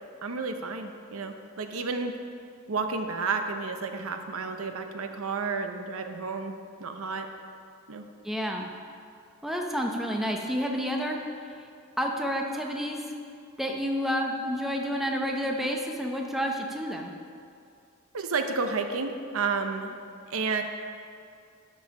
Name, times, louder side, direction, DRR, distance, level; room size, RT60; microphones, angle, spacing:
voice 1, 0.2-2.1 2.7-6.5 6.8-7.3 7.9-8.0 18.1-20.0 20.3-20.6, right 4 dB, 70° right, 6 dB, 0.7 m, -31 dB
voice 2, 8.2-8.7 9.4-11.2 12.0-13.0 13.6-17.1, equal, ahead, 1 dB, 0.8 m, -29 dB
11.5 x 5.5 x 6.3 m, 2.4 s
head